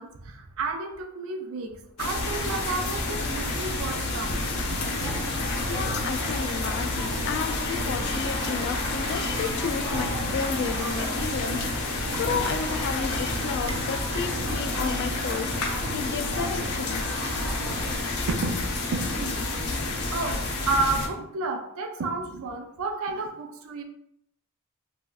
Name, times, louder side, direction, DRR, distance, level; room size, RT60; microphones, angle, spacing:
voice 1, 0.0-1.7 2.0-5.3 13.6-13.8 18.3-18.6 18.9-19.4 20.1-23.8, right 3 dB, 70° right, 5 dB, 0.4 m, -31 dB
sound 1, 2.0-21.1, left 2 dB, 85° left, 0.7 m, -29 dB
sound 2, 4.9-18.0, right 2 dB, 90° right, 1.0 m, -37 dB
voice 2, 5.7-11.6 12.2-15.5 15.9-17.0, left 5 dB, 55° left, 7 dB, 0.3 m, -32 dB
3.1 x 2.7 x 2.3 m, 0.78 s
head